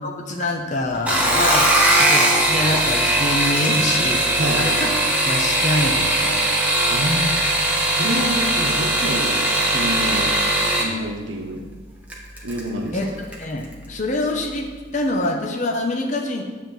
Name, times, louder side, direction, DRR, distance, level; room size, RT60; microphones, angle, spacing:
voice 1, 0.0-1.7 2.0-4.9 5.2-6.5 12.3-12.5 12.9-13.1 13.4-16.4, left 2 dB, 40° left, 0 dB, 0.9 m, -25 dB
sound 1, 0.9-10.9 12.1-12.6 13.0-13.4 13.7-13.8, right 1 dB, 5° right, 1.2 m, -19 dB
voice 2, 4.3-4.7 6.9-7.3 8.0-9.4 9.7-10.4 10.8-11.7 12.4-13.1, right 1 dB, 75° right, 2 dB, 1.1 m, -27 dB
10.5 x 3.7 x 7.4 m, 1.4 s
head